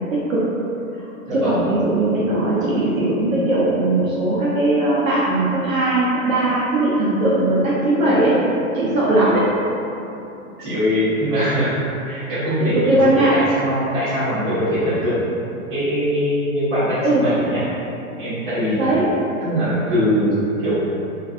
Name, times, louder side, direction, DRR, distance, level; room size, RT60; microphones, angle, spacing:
voice 1, 0.1-0.5 1.3-8.4 8.7-9.5 12.6-13.4 17.0-17.3 18.8-19.1, right 2 dB, 65° right, -8 dB, 0.7 m, -19 dB
voice 2, 1.3-1.6 9.2-9.3 10.6-11.7 12.0-15.3 15.7-17.6 18.2-18.9 19.4-20.9, equal, 35° right, -17 dB, 1.0 m, -22 dB
3.1 x 2.5 x 2.4 m, 2.8 s
hypercardioid pair, 175°, 44 cm